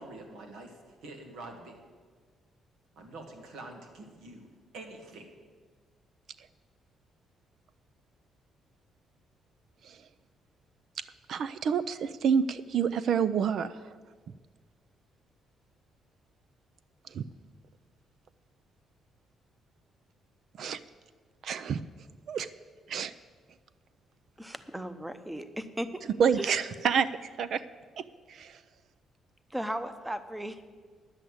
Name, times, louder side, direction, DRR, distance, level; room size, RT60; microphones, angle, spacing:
voice 1, 0.0-1.8 3.0-4.5 4.7-5.3, right 2 dB, 85° right, 4 dB, 1.8 m, -46 dB
voice 2, 11.3-13.9 17.1-17.3 20.6-20.8 21.4-21.8 22.3-22.5 22.9-23.1 26.2-27.6 28.0-28.6, right 7 dB, 65° right, 14 dB, 0.4 m, -28 dB
voice 3, 24.4-26.0 26.3-26.6 29.5-30.6, right 1 dB, 5° right, 11 dB, 0.8 m, -36 dB
10.5 x 7.8 x 7.8 m, 1.5 s
cardioid pair, 90°, 0 cm